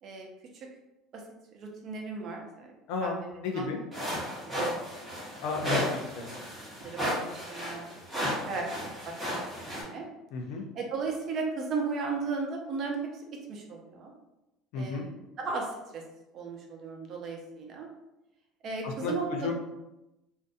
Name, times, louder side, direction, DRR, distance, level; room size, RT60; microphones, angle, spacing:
voice 1, 1.5-2.7 3.0-3.6 4.6-4.8 5.5-5.8 6.8-7.8 8.1-9.4 9.8-10.1 10.7-13.2 13.5-14.1 14.7-16.0 16.3-17.9 18.6-19.5, right 4 dB, 45° right, 1 dB, 0.5 m, -36 dB
voice 2, 2.9-3.8 5.4-5.8 6.1-6.3 10.3-10.7 14.7-15.1 18.8-19.5, left 4 dB, 70° left, 2 dB, 0.5 m, -33 dB
sound 1, 3.9-9.8, equal, 5° right, 1.0 m, -34 dB
2.5 x 2.2 x 2.6 m, 0.94 s
cardioid pair, 140°, 0 cm